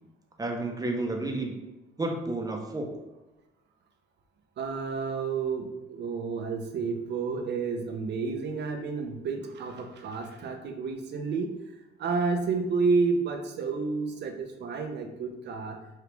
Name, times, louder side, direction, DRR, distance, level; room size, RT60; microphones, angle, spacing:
voice 1, 0.4-1.6 2.0-2.9, right 2 dB, 20° right, 2 dB, 0.6 m, -31 dB
voice 2, 4.6-11.5 12.0-15.8, right 4 dB, 60° right, 5 dB, 0.6 m, -30 dB
3.3 x 2.4 x 3.0 m, 1.0 s
cardioid pair, 90°, 20 cm